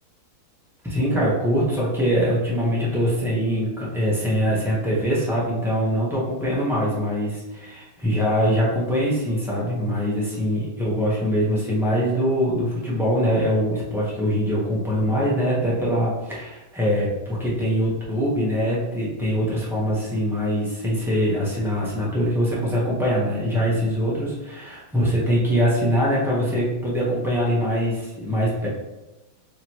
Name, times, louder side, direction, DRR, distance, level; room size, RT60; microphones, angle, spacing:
voice 1, 0.8-28.7, equal, ahead, -7 dB, 0.5 m, -23 dB
5.0 x 3.0 x 3.0 m, 1.0 s
omnidirectional pair, 2.2 m